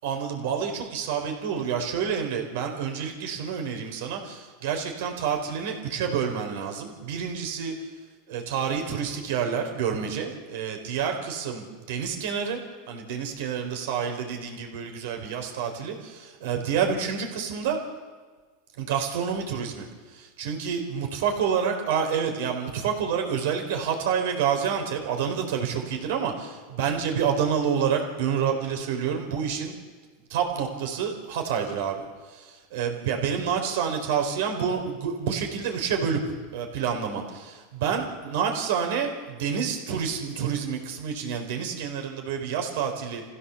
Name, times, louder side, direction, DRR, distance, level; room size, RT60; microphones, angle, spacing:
voice 1, 0.0-7.9 8.3-12.6 12.9-17.8 18.8-29.7 30.3-43.2, right 7 dB, 70° right, 4 dB, 4.1 m, -28 dB
27.0 x 15.5 x 7.1 m, 1.4 s
supercardioid pair, 125°, 0 cm